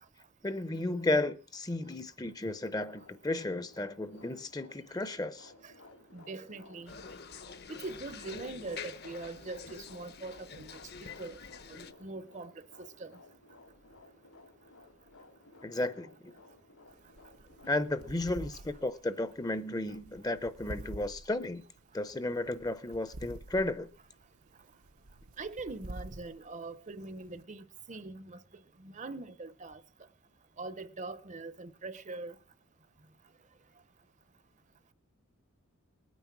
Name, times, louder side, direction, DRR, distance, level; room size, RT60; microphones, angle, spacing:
voice 1, 0.4-5.5 15.6-16.3 17.7-21.6 21.9-23.9, left 2 dB, 15° left, 0.7 m, -33 dB
sound 1, 2.7-18.9, left 2 dB, 85° left, 3.7 m, -57 dB
voice 2, 6.1-7.0 7.7-11.4 11.7-12.5 12.8-13.1 25.4-28.4 28.8-29.8 30.6-32.4, right 3 dB, 35° right, 0.7 m, -42 dB
sound 2, 6.9-11.9, left 6 dB, 45° left, 0.9 m, -47 dB
sound 3, 16.9-27.4, right 1 dB, 80° right, 1.0 m, -49 dB
20.0 x 9.4 x 6.0 m
head